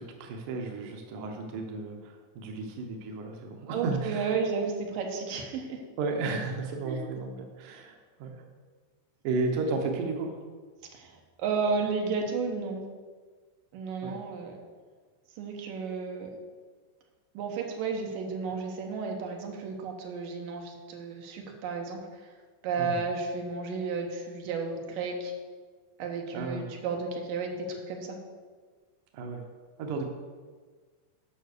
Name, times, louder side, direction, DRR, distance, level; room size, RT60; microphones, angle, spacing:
voice 1, 0.0-4.4 6.0-8.4 9.2-10.4 14.0-14.2 22.8-23.0 26.3-26.7 29.1-29.4 29.8-30.0, right 3 dB, 85° right, 3 dB, 1.8 m, -33 dB
voice 2, 3.7-5.8 6.8-7.0 10.9-12.8 13.7-14.6 15.4-16.3 17.3-22.0 22.6-25.3 26.0-28.2, right 4 dB, 70° right, 1 dB, 2.2 m, -32 dB
9.2 x 5.7 x 6.6 m, 1.5 s
omnidirectional pair, 5.1 m